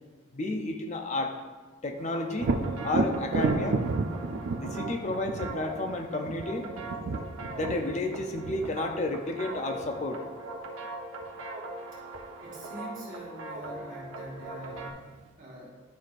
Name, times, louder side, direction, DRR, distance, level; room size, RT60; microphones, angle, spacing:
voice 1, 0.3-1.3 1.8-2.5 2.8-3.8 4.6-6.7 7.5-10.2, left 2 dB, 35° left, 4 dB, 0.4 m, -32 dB
sound 1, 2.0-14.9, right 2 dB, 75° right, 0.8 m, -41 dB
Thunder, 2.4-10.1 13.7-13.8 14.3-15.2, right 3 dB, 55° right, 0.3 m, -32 dB
voice 2, 12.4-15.8, equal, 40° right, -5 dB, 1.3 m, -44 dB
10.5 x 4.5 x 2.5 m, 1.4 s
head